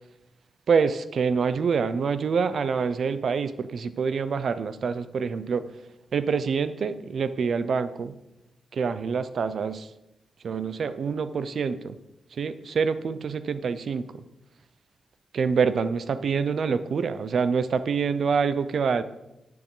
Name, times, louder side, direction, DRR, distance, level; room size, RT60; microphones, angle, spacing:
voice 1, 0.7-5.7 6.1-8.1 8.7-9.9 10.4-12.0 12.3-14.2 15.3-19.0, right 5 dB, 70° right, 13 dB, 0.6 m, -26 dB
11.0 x 9.5 x 3.9 m, 0.90 s
cardioid pair, 100°, 0 cm